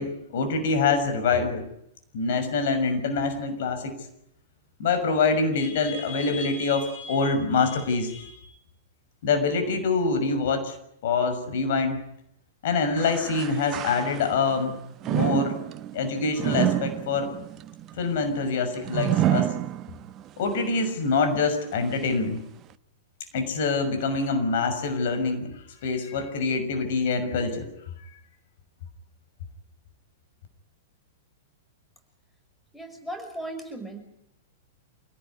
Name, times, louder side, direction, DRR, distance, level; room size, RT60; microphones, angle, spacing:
voice 1, 0.0-1.6 2.1-3.9 4.8-8.5 9.2-10.8 11.0-12.0 12.6-14.8 15.1-15.6 15.9-17.3 18.0-19.5 20.4-22.4 23.3-25.5 25.8-27.7 28.0-28.1, left 4 dB, 50° left, 8 dB, 6.2 m, -25 dB
sound 1, 13.0-14.5 15.0-20.3 20.8-20.9 21.7-21.8, right 12 dB, 30° right, 1.1 m, -28 dB
voice 2, 32.7-34.0, right 1 dB, 5° left, 7 dB, 6.0 m, -36 dB
27.5 x 18.0 x 9.8 m, 0.77 s
figure-of-eight pair, 100°, 0 cm